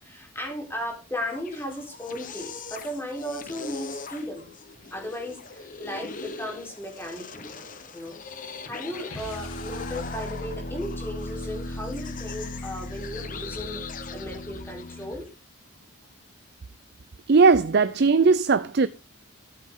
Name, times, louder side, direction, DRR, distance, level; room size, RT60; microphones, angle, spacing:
voice 1, 0.0-4.5 4.9-7.5 7.9-8.2 8.6-13.8 14.1-15.3, left 1 dB, 10° left, 3.8 m, -35 dB
sound 1, 1.1-15.3, left 5 dB, 40° left, 1.0 m, -41 dB
sound 2, 9.1-15.2, left 1 dB, 85° left, 2.2 m, -37 dB
voice 2, 17.3-18.9, right 4 dB, 50° right, 0.5 m, -18 dB
13.0 x 8.5 x 3.7 m
head